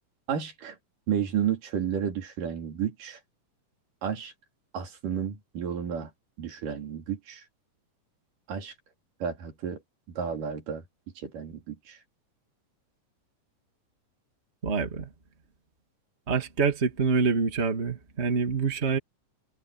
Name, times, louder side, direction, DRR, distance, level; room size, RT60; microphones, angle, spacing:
voice 1, 0.3-0.8 1.1-3.2 4.0-4.3 4.7-6.1 6.4-7.4 8.5-8.7 9.2-9.8 10.2-10.8 11.2-12.0, right 8 dB, 70° right, 4.4 m, -31 dB
voice 2, 14.6-15.1 16.3-19.0, right 5 dB, 20° right, 2.5 m, -26 dB
omnidirectional pair, 3.9 m